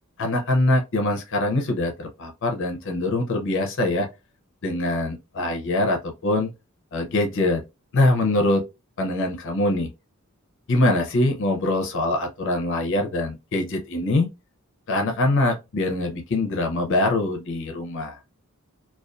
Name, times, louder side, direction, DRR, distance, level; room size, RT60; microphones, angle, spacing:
voice 1, 0.2-4.1 4.6-6.5 6.9-7.6 7.9-8.6 9.0-9.9 10.7-14.3 14.9-18.2, left 2 dB, 60° left, 0.5 m, -23 dB
2.4 x 2.2 x 2.2 m
head